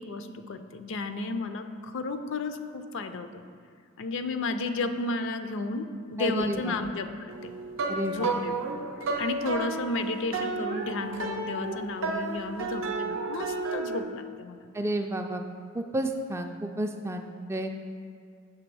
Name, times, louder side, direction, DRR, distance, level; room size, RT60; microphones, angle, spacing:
voice 1, 0.0-3.3 4.0-7.1 7.4-7.5 8.1-8.8 9.2-14.7, left 3 dB, 65° left, 8 dB, 0.5 m, -33 dB
voice 2, 6.2-6.8 7.9-8.3 14.7-15.5 15.7-17.7, right 1 dB, 10° right, 4 dB, 0.3 m, -31 dB
sound 1, 7.3-14.0, right 3 dB, 65° right, 0.6 m, -32 dB
8.0 x 3.4 x 6.1 m, 2.2 s
head